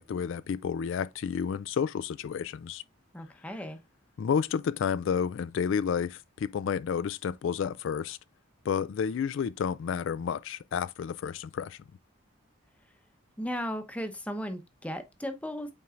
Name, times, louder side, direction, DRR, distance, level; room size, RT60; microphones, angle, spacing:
voice 1, 0.0-2.8 4.2-8.2 8.6-11.8, left 7 dB, 70° left, 0.3 m, -31 dB
voice 2, 3.1-3.8 13.4-15.7, equal, 5° left, 0.8 m, -36 dB
8.5 x 4.6 x 2.5 m
head